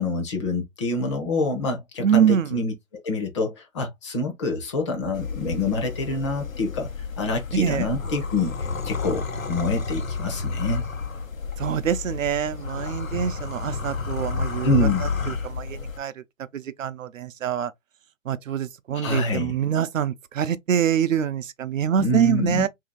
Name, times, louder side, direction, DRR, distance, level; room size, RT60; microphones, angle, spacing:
voice 1, 0.0-2.7 3.0-6.9 7.2-10.8 14.6-15.1 18.9-19.6 22.0-22.6, left 2 dB, 25° left, 0.7 m, -26 dB
voice 2, 2.0-2.6 7.5-7.9 11.6-16.1 16.5-17.7 18.3-22.7, right 9 dB, 75° right, 0.6 m, -25 dB
sound 1, 5.1-16.0, left 4 dB, 90° left, 0.9 m, -31 dB
2.8 x 2.7 x 3.8 m
hypercardioid pair, 140°, 39 cm